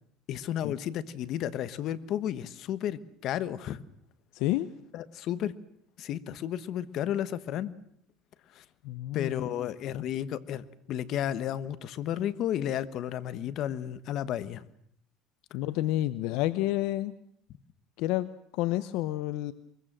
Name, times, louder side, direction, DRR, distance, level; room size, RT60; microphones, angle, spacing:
voice 1, 0.3-3.8 4.9-5.5 6.0-7.7 8.5-8.6 9.1-14.6, left 11 dB, 55° left, 15 dB, 1.3 m, -32 dB
voice 2, 4.3-4.7 8.8-10.0 15.5-17.1 18.0-19.5, left 15 dB, 75° left, 15 dB, 0.9 m, -30 dB
23.5 x 22.0 x 7.6 m, 0.69 s
cardioid pair, 130°, 0 cm